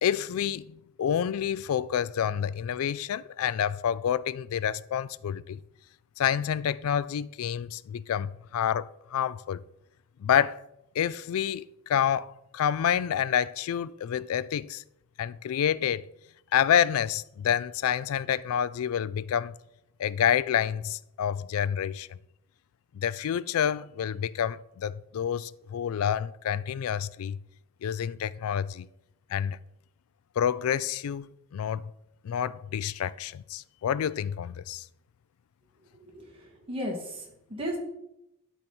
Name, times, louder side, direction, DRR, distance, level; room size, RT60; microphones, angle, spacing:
voice 1, 0.0-5.6 6.2-9.6 10.2-10.6 11.0-14.8 15.2-16.1 16.5-19.6 20.0-22.1 22.9-27.4 27.8-28.9 29.3-29.6 30.4-31.8 32.2-34.8, left 9 dB, 75° left, 0.3 m, -28 dB
voice 2, 35.9-37.8, equal, 25° right, 1.8 m, -36 dB
12.0 x 4.0 x 4.4 m
head